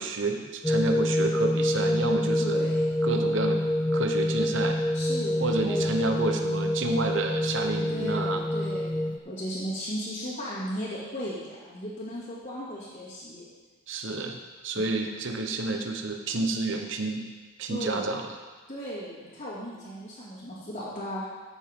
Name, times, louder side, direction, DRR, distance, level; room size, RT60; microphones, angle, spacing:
voice 1, 0.0-2.6 3.0-3.6 3.9-4.8 5.4-8.4 13.9-14.4 14.6-17.2 17.6-18.2, right 3 dB, 65° right, 4 dB, 1.0 m, -29 dB
sound 1, 0.6-9.2, left 1 dB, 5° left, 0.3 m, -26 dB
voice 2, 2.4-2.8 4.9-5.9 7.9-13.5 17.7-18.2 18.7-21.3, equal, 35° left, -12 dB, 2.8 m, -36 dB
13.5 x 8.2 x 3.8 m, 1.3 s
head